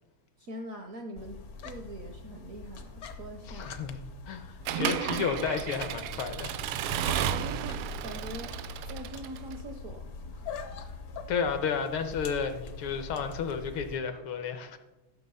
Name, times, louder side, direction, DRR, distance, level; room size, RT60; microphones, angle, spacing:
voice 1, 0.4-3.7 4.7-5.0 7.3-8.5 8.9-10.5, right 1 dB, 60° right, 5 dB, 0.8 m, -43 dB
sound 1, 1.2-14.0, left 4 dB, 60° left, 1.0 m, -43 dB
voice 2, 3.5-4.0 4.3-6.5 11.3-14.8, left 6 dB, 75° left, 8 dB, 1.8 m, -32 dB
Accelerating revving vroom / Mechanisms, 4.7-9.6, right 10 dB, 80° right, 1.4 m, -33 dB
13.0 x 6.3 x 5.5 m, 1.1 s
omnidirectional pair, 2.4 m